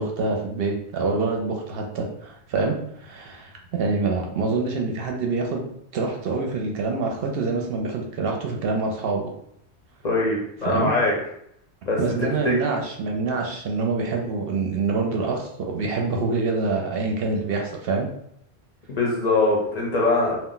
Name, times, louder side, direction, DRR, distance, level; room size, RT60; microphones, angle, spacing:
voice 1, 0.0-5.7 5.9-9.3 10.6-10.9 12.0-18.1, right 3 dB, 65° right, 1 dB, 0.7 m, -26 dB
voice 2, 10.0-11.1 11.8-12.5 18.9-20.4, left 2 dB, 45° left, -3 dB, 0.7 m, -22 dB
2.4 x 2.1 x 3.7 m, 0.71 s
omnidirectional pair, 1.1 m